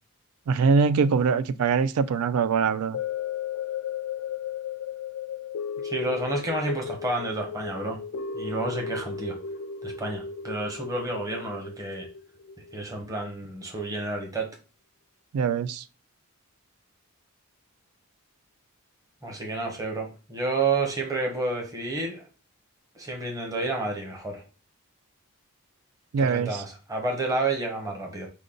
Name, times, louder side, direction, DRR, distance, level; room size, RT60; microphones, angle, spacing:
voice 1, 0.5-3.0 15.3-15.8 26.1-26.6, right 5 dB, 75° right, 0.4 m, -23 dB
sound 1, 2.9-13.3 13.8-13.9, left 6 dB, 60° left, 0.4 m, -35 dB
voice 2, 5.8-8.0 8.3-9.3 9.8-12.1 12.7-14.5 19.2-22.2 23.0-24.4 26.2-28.3, right 2 dB, 15° right, 0.9 m, -30 dB
5.1 x 2.2 x 3.7 m
head